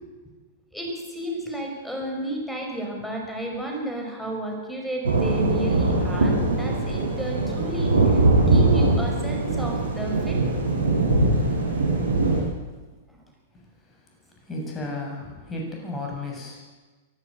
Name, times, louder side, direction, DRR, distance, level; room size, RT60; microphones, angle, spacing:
voice 1, 0.7-10.4 13.1-13.2, right 1 dB, ahead, 1 dB, 5.7 m, -32 dB
sound 1, 5.0-12.4, right 2 dB, 90° right, 6.9 m, -21 dB
voice 2, 14.4-16.6, left 2 dB, 15° left, -1 dB, 7.9 m, -33 dB
24.0 x 14.0 x 8.1 m, 1.3 s
hypercardioid pair, 110°, 0 cm